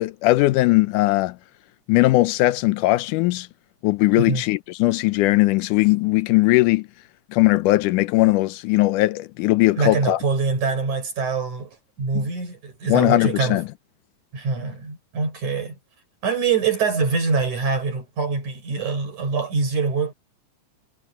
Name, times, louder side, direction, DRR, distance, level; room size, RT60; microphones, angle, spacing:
voice 1, 0.0-1.4 1.9-3.5 3.8-6.9 7.3-10.2 12.1-12.3 12.9-13.7, left 19 dB, 85° left, 2.2 m, -19 dB
voice 2, 4.1-4.4 9.8-11.7 12.0-13.6 14.3-15.8 16.2-20.1, right 4 dB, 65° right, 7.0 m, -24 dB
omnidirectional pair, 3.6 m